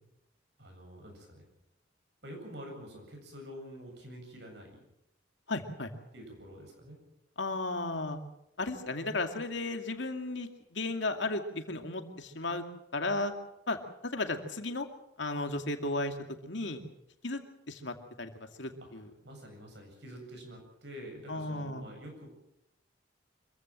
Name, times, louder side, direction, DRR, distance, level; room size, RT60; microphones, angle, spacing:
voice 1, 0.6-1.4 2.2-4.8 6.1-7.0 18.8-18.9 19.2-22.3, equal, 65° right, 2 dB, 8.0 m, -47 dB
voice 2, 5.5-5.9 7.4-8.2 8.6-12.6 12.9-13.3 13.7-13.8 14.1-14.9 15.2-16.1 16.4-16.8 17.2-17.4 17.7-18.3 18.6-19.1 21.3-21.9, left 2 dB, 75° left, 6 dB, 2.4 m, -34 dB
25.5 x 15.5 x 7.6 m, 0.82 s
head